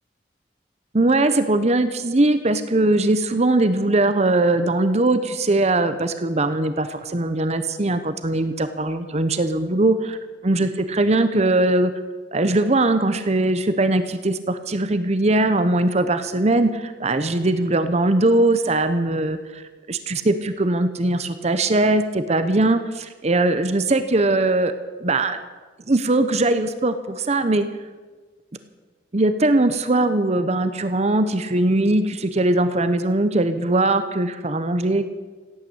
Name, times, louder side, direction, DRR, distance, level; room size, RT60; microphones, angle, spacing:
voice 1, 0.9-10.2 10.4-11.9 12.3-22.8 23.2-24.7 25.0-25.4 25.9-27.7 29.1-35.1, right 2 dB, 40° right, 10 dB, 0.9 m, -20 dB
16.0 x 9.3 x 8.6 m, 1.3 s
head